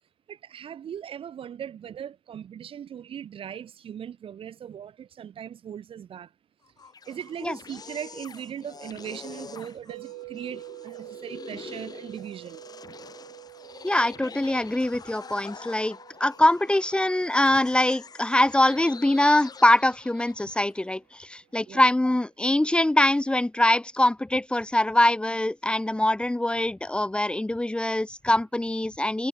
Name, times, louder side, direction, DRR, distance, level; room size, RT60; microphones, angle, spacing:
voice 1, 0.3-6.3 7.1-12.6 21.7-21.9, right 9 dB, 40° right, 1.9 m, -39 dB
sound 1, 6.6-20.8, left 5 dB, 30° left, 7.6 m, -45 dB
sound 2, 9.9-20.0, right 23 dB, 85° right, 3.0 m, -47 dB
voice 2, 13.8-29.3, left 1 dB, 5° left, 1.5 m, -23 dB
supercardioid pair, 90°, 13 cm